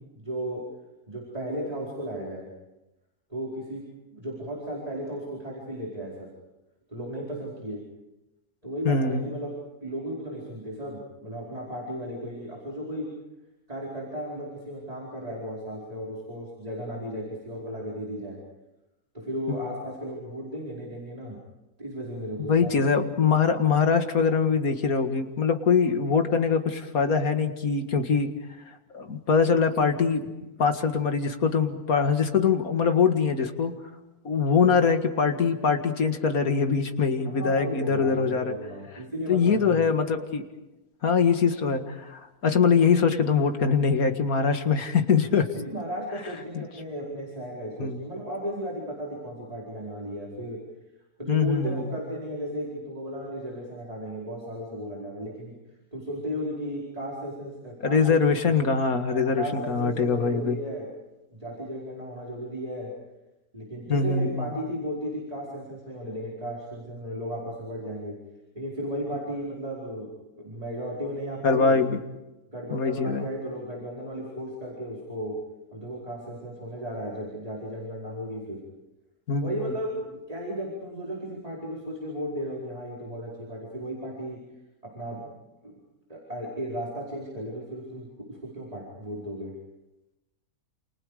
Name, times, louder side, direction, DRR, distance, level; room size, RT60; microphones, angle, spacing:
voice 1, 0.1-0.6 1.1-2.5 3.3-3.8 4.1-6.3 6.9-7.8 8.6-13.0 13.7-18.4 19.1-21.4 21.8-22.8 37.2-39.9 45.5-50.6 51.2-55.5 55.9-58.5 59.1-60.9 61.3-62.9 63.5-68.1 68.5-71.8 72.5-75.3 75.7-78.6 79.4-84.4 84.8-85.3 85.6-85.7 86.1-89.5, equal, 25° right, -3 dB, 5.0 m, -35 dB
voice 2, 8.9-9.3 22.5-28.3 28.9-30.2 30.6-33.7 34.2-38.6 39.3-40.4 41.0-45.5 47.8-48.0 51.3-51.9 57.8-60.6 63.9-64.5 71.4-72.0 72.7-73.3 79.3-79.5, left 5 dB, 70° left, 6 dB, 2.3 m, -23 dB
29.0 x 28.5 x 5.0 m, 1.0 s
omnidirectional pair, 1.6 m